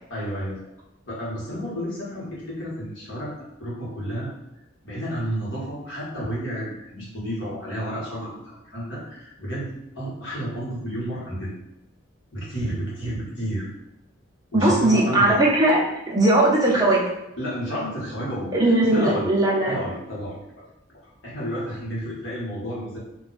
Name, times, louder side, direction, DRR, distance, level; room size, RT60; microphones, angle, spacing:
voice 1, 0.1-0.6 1.1-4.3 4.8-11.5 12.3-13.7 14.5-15.4 17.4-19.3 19.6-20.4 21.2-23.0, equal, 65° left, -7 dB, 1.4 m, -31 dB
voice 2, 14.5-17.0 18.5-19.8, right 1 dB, 20° right, -4 dB, 0.7 m, -19 dB
2.7 x 2.3 x 4.0 m, 0.90 s
head